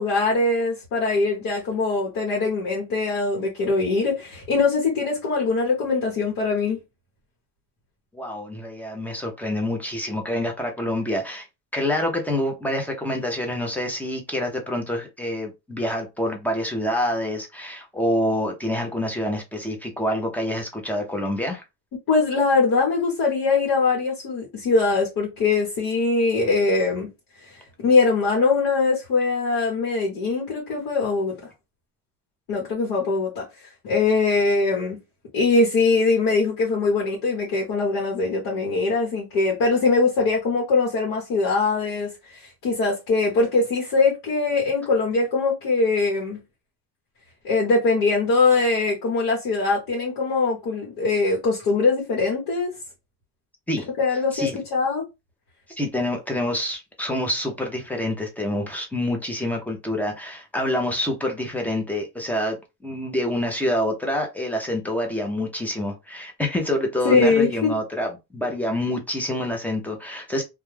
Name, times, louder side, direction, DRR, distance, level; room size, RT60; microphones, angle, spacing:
voice 1, 0.0-6.8 22.1-27.1 27.4-31.3 32.5-35.0 35.3-46.4 47.4-52.7 54.0-55.1 67.0-67.7, left 3 dB, 65° left, 1.0 m, -22 dB
voice 2, 8.1-11.5 11.7-21.6 53.7-53.9 54.3-54.6 55.8-70.4, left 1 dB, 5° left, 0.5 m, -27 dB
2.2 x 2.2 x 3.1 m
cardioid pair, 145°, 37 cm